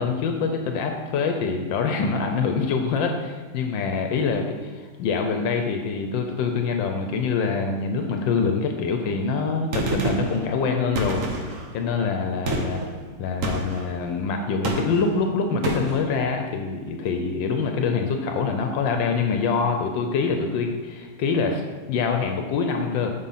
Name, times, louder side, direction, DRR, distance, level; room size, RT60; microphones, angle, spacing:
voice 1, 0.0-12.8 13.2-21.6 21.9-23.1, left 5 dB, 80° left, 4 dB, 1.4 m, -25 dB
Gunshot gunfire, 9.7-10.4 11.0-11.7 12.5-12.9 13.4-13.9 14.6-15.1 15.6-16.0, right 1 dB, 50° right, 1.2 m, -27 dB
7.6 x 6.1 x 4.1 m, 1.5 s
omnidirectional pair, 2.0 m